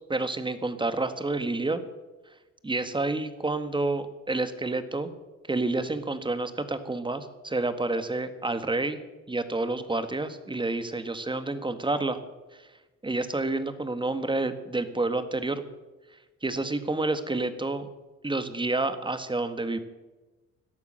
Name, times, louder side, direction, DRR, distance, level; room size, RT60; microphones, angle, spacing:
voice 1, 0.1-1.8 2.6-5.1 5.5-9.0 9.3-12.2 13.0-15.6 16.4-17.9 18.2-19.8, right 2 dB, 15° right, 10 dB, 1.6 m, -29 dB
18.0 x 12.0 x 6.5 m, 1.1 s
cardioid pair, 90°, 30 cm